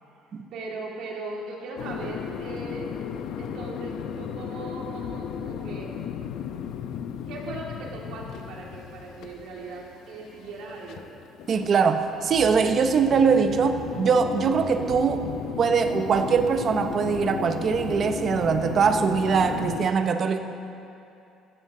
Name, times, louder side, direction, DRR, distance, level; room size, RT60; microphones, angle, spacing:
voice 1, 0.5-2.9 3.4-5.9 7.3-11.1, right 3 dB, 70° right, -2 dB, 2.5 m, -38 dB
sound 1, 1.8-19.9, left 8 dB, 65° left, 0.6 m, -35 dB
voice 2, 11.5-15.3 15.6-20.4, right 6 dB, 35° right, 8 dB, 0.8 m, -22 dB
14.5 x 14.5 x 3.8 m, 2.7 s
cardioid pair, 155°, 0 cm